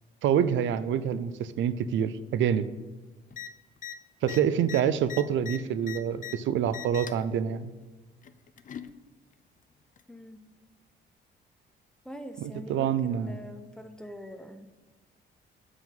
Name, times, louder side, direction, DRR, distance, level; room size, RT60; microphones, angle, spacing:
voice 1, 0.2-2.7 4.2-7.7 12.4-13.3, right 8 dB, 75° right, 13 dB, 0.5 m, -27 dB
sound 1, 3.3-3.5 3.8-4.0 4.2-6.4 6.7-7.3 8.2-8.9 10.0-10.1, left 9 dB, 40° left, 0.5 m, -40 dB
voice 2, 4.5-4.9 10.1-10.4 12.0-14.7, equal, 5° left, 8 dB, 0.7 m, -44 dB
7.6 x 4.8 x 5.4 m, 1.3 s
cardioid pair, 90°, 20 cm